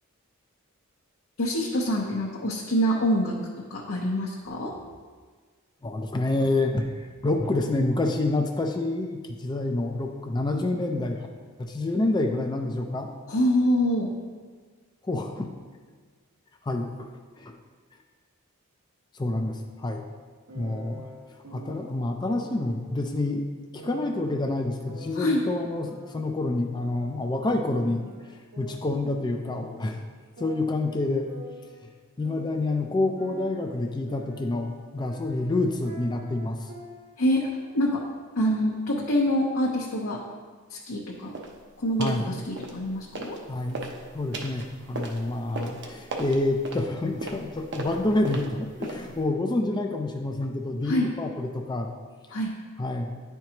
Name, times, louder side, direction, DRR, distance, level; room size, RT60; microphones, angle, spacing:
voice 1, 1.4-3.4 3.7-4.8 13.3-14.1 25.1-25.4 37.2-37.5 37.7-38.0 38.4-40.2 40.7-41.3 41.8-43.4 50.9-51.1 52.3-52.5, equal, 65° left, -3 dB, 0.7 m, -25 dB
voice 2, 5.8-11.3 11.6-13.1 15.0-15.5 16.6-17.1 17.4-17.5 19.1-20.0 20.5-21.1 21.5-23.4 23.7-28.0 28.3-30.0 30.4-31.3 31.8-31.9 32.2-36.7 42.0-42.3 43.5-43.9 44.1-51.9 52.8-53.1, left 2 dB, 20° left, 3 dB, 0.3 m, -28 dB
sound 1, 20.5-21.9 22.4-22.9 23.8-25.4 25.9-27.4 27.7-29.9 30.4-32.8 33.2-37.3 37.6-37.9 38.4-39.4, right 1 dB, 75° right, 1.3 m, -47 dB
sound 2, 41.3-41.6 42.0-42.3 42.6-43.4 43.7-49.2, right 2 dB, 50° right, 0.7 m, -37 dB
10.0 x 4.5 x 2.9 m, 1.5 s
head